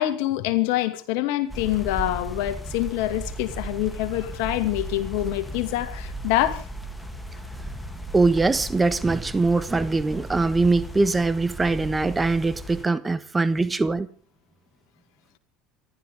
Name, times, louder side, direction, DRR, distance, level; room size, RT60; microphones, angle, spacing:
voice 1, 0.0-6.6, left 15 dB, 70° left, 2.3 m, -25 dB
sound 1, 1.5-12.9, right 1 dB, 5° left, 2.8 m, -36 dB
voice 2, 8.1-14.1, right 3 dB, 15° right, 1.5 m, -22 dB
27.0 x 13.0 x 3.7 m
hypercardioid pair, 85°, 0 cm